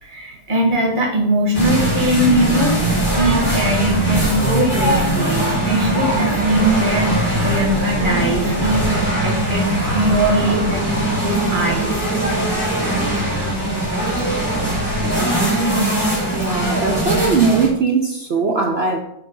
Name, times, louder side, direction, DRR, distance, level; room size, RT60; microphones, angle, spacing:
voice 1, 0.0-9.7 9.9-10.9 11.2-11.9, right 1 dB, 25° right, 1.8 m, -20 dB
sound 1, 1.5-17.7, right 1 dB, 5° left, 3.0 m, -20 dB
voice 2, 16.3-19.0, right 4 dB, 65° right, 0.6 m, -20 dB
8.1 x 4.4 x 5.3 m
omnidirectional pair, 1.9 m